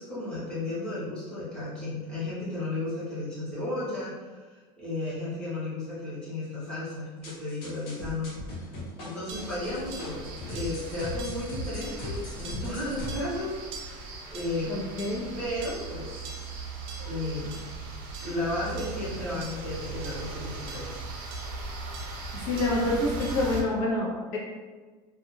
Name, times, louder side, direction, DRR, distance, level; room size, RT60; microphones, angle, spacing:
voice 1, 0.0-8.3 9.0-13.8 14.3-14.7 15.4-16.5 17.0-17.5 18.2-21.0, left 2 dB, 5° left, -11 dB, 0.9 m, -34 dB
sound 1, 7.2-13.2, left 1 dB, 90° left, 0.9 m, -39 dB
sound 2, 9.3-23.6, right 3 dB, 55° right, 0.5 m, -38 dB
voice 2, 14.7-15.2 17.0-17.1 22.3-24.4, left 2 dB, 60° left, -4 dB, 0.6 m, -27 dB
2.3 x 2.3 x 3.1 m, 1.4 s
cardioid pair, 180°, 12 cm